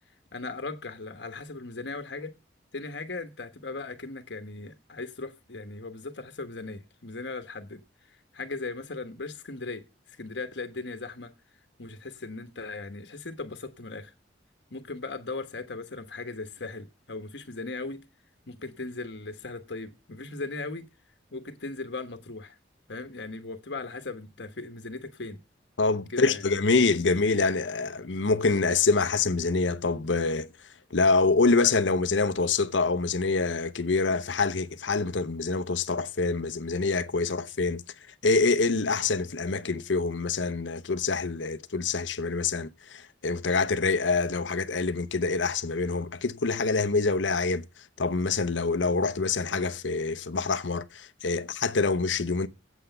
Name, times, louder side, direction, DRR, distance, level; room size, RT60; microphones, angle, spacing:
voice 1, 0.3-2.3 2.7-7.8 8.1-11.3 11.8-14.1 14.7-18.0 18.5-20.9 21.3-22.6 22.9-25.4 26.1-26.4, left 3 dB, 70° left, 1.2 m, -38 dB
voice 2, 25.8-30.5 30.9-37.8 38.2-47.6 48.0-52.5, left 4 dB, 85° left, 0.9 m, -26 dB
8.2 x 8.1 x 6.8 m
head